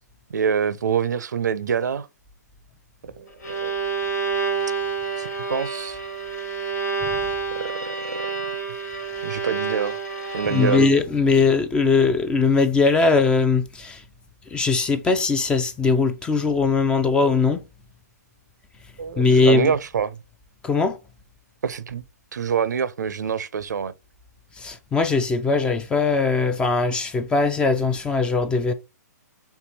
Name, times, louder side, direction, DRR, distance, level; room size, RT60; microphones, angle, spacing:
voice 1, 0.3-2.1 3.0-3.1 3.4-3.8 5.2-6.0 7.5-8.3 9.2-10.0 10.3-10.8 19.0-20.2 21.6-22.0 22.3-23.9, right 7 dB, 80° right, 0.5 m, -26 dB
Bowed string instrument, 3.1-11.2, right 5 dB, 85° left, 2.2 m, -28 dB
voice 2, 10.5-14.0 14.5-17.6 19.2-19.7 20.6-21.0 24.6-28.7, left 4 dB, 10° left, 0.4 m, -20 dB
4.5 x 3.5 x 2.8 m
hypercardioid pair, 140°, 9 cm